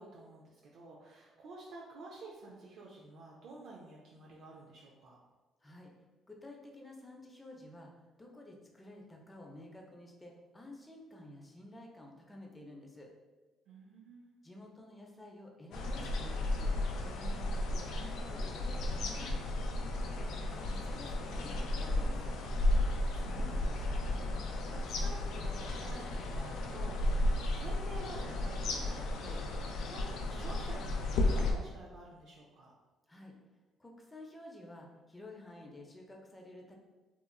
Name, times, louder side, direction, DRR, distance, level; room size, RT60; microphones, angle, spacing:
voice 1, 0.0-5.2 13.7-14.3 22.9-32.7, right 2 dB, 70° right, -4 dB, 0.4 m, -51 dB
voice 2, 5.6-5.9 6.3-7.9 8.2-13.1 14.4-16.7 17.0-19.3 20.3-22.3 33.1-33.3 33.8-36.8, left 1 dB, 15° left, 0 dB, 0.6 m, -51 dB
sound 1, 15.7-31.5, left 1 dB, 75° left, 0.3 m, -33 dB
2.9 x 2.3 x 2.3 m, 1.2 s
supercardioid pair, 65°, 0 cm